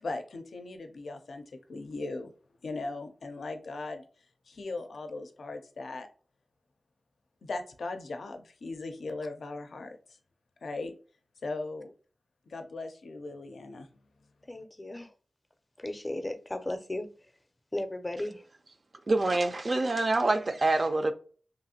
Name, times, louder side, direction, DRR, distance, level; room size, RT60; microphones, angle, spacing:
voice 1, 0.0-1.4 1.7-2.3 2.6-4.0 4.5-6.1 7.4-10.2 10.6-10.9 11.4-11.9 12.5-13.9, left 3 dB, 90° left, 0.4 m, -38 dB
voice 2, 14.5-15.1 15.8-17.1 17.7-18.5, left 1 dB, 25° left, 0.5 m, -35 dB
voice 3, 19.1-21.1, right 2 dB, 50° right, 0.4 m, -26 dB
2.9 x 2.4 x 2.6 m
wide cardioid pair, 70°, 0 cm